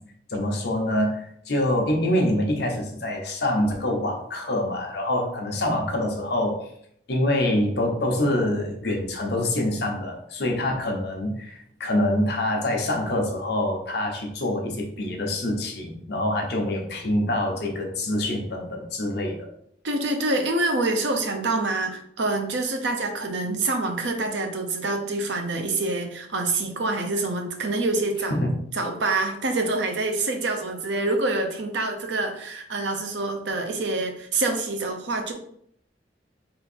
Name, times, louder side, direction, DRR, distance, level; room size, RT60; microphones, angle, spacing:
voice 1, 0.3-6.7 7.1-19.5 28.3-28.5, left 1 dB, 60° left, 1 dB, 0.8 m, -25 dB
voice 2, 19.8-28.4 28.7-35.3, right 2 dB, 75° right, 4 dB, 0.7 m, -26 dB
3.8 x 2.6 x 4.2 m, 0.68 s
head